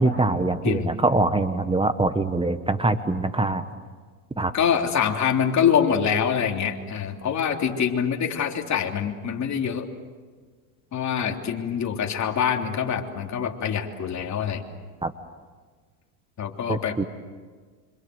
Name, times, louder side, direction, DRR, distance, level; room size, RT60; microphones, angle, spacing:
voice 1, 0.0-3.6 4.4-4.5 15.0-15.1 16.7-17.0, right 2 dB, 10° right, 10 dB, 1.2 m, -23 dB
voice 2, 4.5-9.8 10.9-14.6 16.4-17.0, left 8 dB, 35° left, 2 dB, 3.4 m, -25 dB
26.5 x 26.0 x 7.9 m, 1.5 s
supercardioid pair, 110°, 47 cm